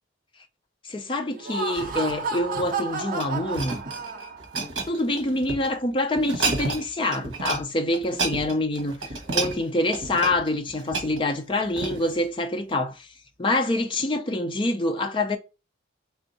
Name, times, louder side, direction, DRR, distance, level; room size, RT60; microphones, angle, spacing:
voice 1, 0.8-3.8 4.9-9.0 9.3-13.1 13.4-15.4, left 2 dB, 25° left, 0.5 m, -26 dB
Laughter, 1.3-4.6, right 4 dB, 45° right, 0.5 m, -31 dB
sound 1, 2.5-5.7 6.2-6.9 7.1-7.6 7.9-12.2 12.8-12.9, right 3 dB, 70° right, 1.1 m, -31 dB
3.3 x 2.6 x 3.9 m
head